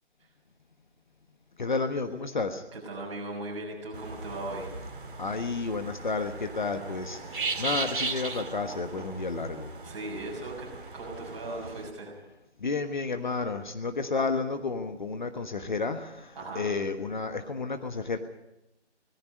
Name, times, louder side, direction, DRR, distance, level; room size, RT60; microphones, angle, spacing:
voice 1, 1.6-2.6 5.2-7.2 7.6-9.7 12.6-18.2, left 4 dB, 40° left, 8 dB, 1.4 m, -31 dB
voice 2, 2.7-4.8 9.8-10.7 10.9-12.2 16.3-16.7, right 2 dB, 25° right, -1 dB, 6.8 m, -38 dB
sound 1, 3.9-11.9, right 3 dB, 45° right, 2.4 m, -37 dB
18.5 x 15.5 x 9.4 m, 0.90 s
figure-of-eight pair, 155°, 35 cm